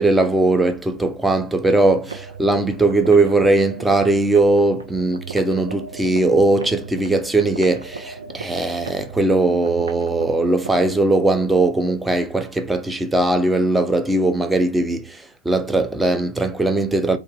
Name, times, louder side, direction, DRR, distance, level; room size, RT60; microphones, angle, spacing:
voice 1, 0.0-15.2 15.5-17.2, right 2 dB, 5° right, 0.4 m, -19 dB
sound 1, 2.0-11.0, right 5 dB, 75° right, 0.4 m, -37 dB
2.1 x 2.1 x 3.2 m
figure-of-eight pair, 100°, 0 cm